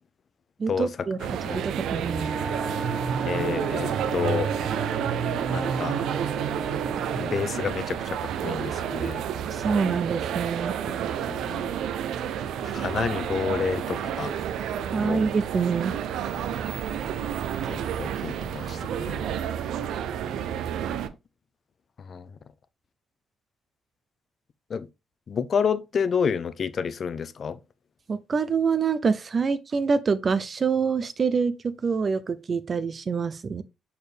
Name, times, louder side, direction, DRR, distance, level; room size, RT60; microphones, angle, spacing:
voice 1, 0.6-1.2 1.5-2.4 9.4-10.8 14.9-16.0 28.1-31.5 31.8-33.6, right 5 dB, 40° right, 0.6 m, -26 dB
sound 1, 1.2-21.1, right 9 dB, 80° right, 0.6 m, -30 dB
Wind instrument woodwind instrument, 2.0-7.4, right 2 dB, 5° left, 0.7 m, -36 dB
voice 2, 3.3-4.5 5.5-6.0 7.1-9.3 11.3-11.7 12.6-14.3 15.0-15.2 17.7-19.2 22.1-22.2 24.7-24.9 25.3-27.6, left 6 dB, 50° left, 0.7 m, -29 dB
6.9 x 4.4 x 3.4 m
cardioid pair, 90°, 0 cm